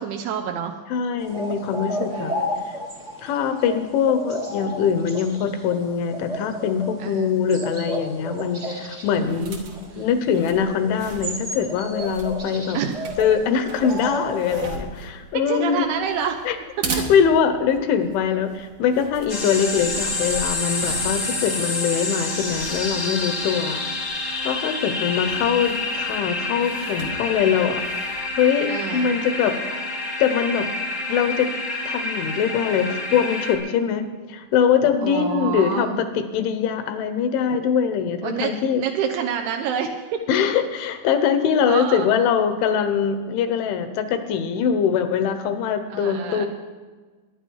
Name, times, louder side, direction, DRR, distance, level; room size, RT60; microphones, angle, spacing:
voice 1, 0.0-0.8 2.1-2.6 7.0-7.4 9.3-10.1 12.7-13.0 15.5-16.4 17.0-17.1 21.0-21.4 28.7-29.1 35.0-36.0 38.2-40.2 41.6-42.1 45.9-46.5, right 7 dB, 85° right, 4 dB, 2.3 m, -28 dB
voice 2, 0.9-2.3 3.2-9.6 10.0-12.8 13.2-15.9 16.5-16.6 16.9-23.8 24.4-27.8 28.4-29.5 30.2-30.7 31.1-31.5 31.9-38.8 40.3-46.5, left 7 dB, 75° left, 9 dB, 3.2 m, -22 dB
sound 1, 1.2-14.6, equal, 50° right, 0.7 m, -33 dB
sound 2, 9.1-28.4, right 3 dB, 70° right, 1.6 m, -39 dB
sound 3, 19.3-33.5, left 2 dB, 35° left, 1.1 m, -28 dB
22.5 x 9.8 x 4.7 m, 1.4 s
omnidirectional pair, 5.8 m